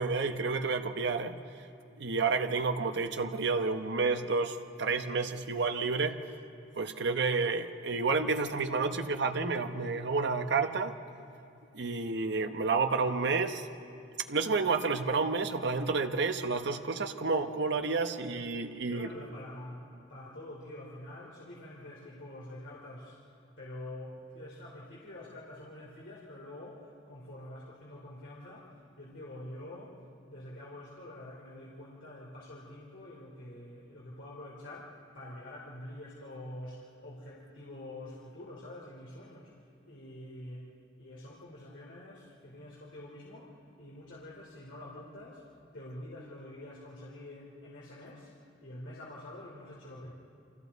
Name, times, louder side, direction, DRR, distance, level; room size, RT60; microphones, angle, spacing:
voice 1, 0.0-1.3 2.0-6.2 6.8-10.9 11.7-13.8 14.3-19.1, right 4 dB, 60° right, 7 dB, 0.9 m, -30 dB
voice 2, 18.8-23.2 23.6-30.0 30.3-40.7 41.0-45.4 45.7-50.1, left 1 dB, 70° left, -5 dB, 2.9 m, -46 dB
29.5 x 25.0 x 4.1 m, 2.6 s
head